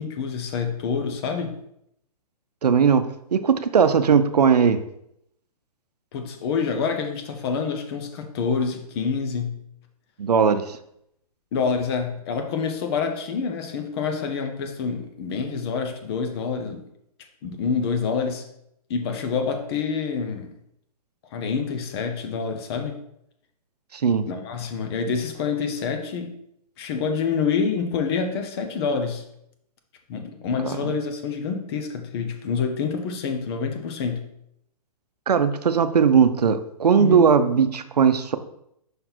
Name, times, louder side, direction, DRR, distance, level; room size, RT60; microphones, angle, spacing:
voice 1, 0.0-1.6 6.1-9.6 11.5-16.8 17.4-18.4 18.9-20.5 21.3-23.0 24.3-26.3 26.8-29.2 30.1-34.3 37.0-37.2, left 5 dB, 40° left, 5 dB, 1.0 m, -27 dB
voice 2, 2.6-3.0 3.3-4.8 10.2-10.8 23.9-24.3 30.6-30.8 35.3-38.4, right 6 dB, 90° right, 10 dB, 0.6 m, -18 dB
5.4 x 3.9 x 4.5 m, 0.76 s
hypercardioid pair, 140°, 20 cm